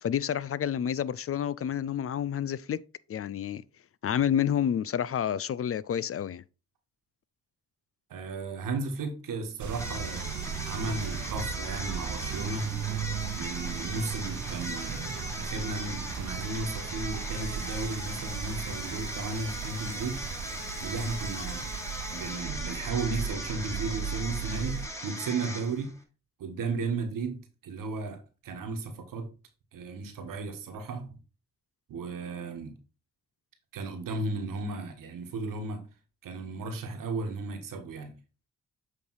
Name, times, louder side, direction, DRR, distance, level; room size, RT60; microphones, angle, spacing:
voice 1, 0.0-2.8 3.1-3.6 4.0-6.4, left 9 dB, 45° left, 0.4 m, -29 dB
voice 2, 8.1-10.3 10.6-12.7 13.4-20.2 20.8-21.7 22.1-25.9 26.4-29.3 29.7-31.2 31.9-32.7 33.7-35.8 36.2-38.1, right 3 dB, 85° right, 1.5 m, -35 dB
sound 1, 9.6-24.9, right 7 dB, 60° right, 0.9 m, -37 dB
sound 2, 9.7-26.0, equal, 10° left, 1.9 m, -39 dB
7.7 x 3.4 x 4.7 m
cardioid pair, 60°, 32 cm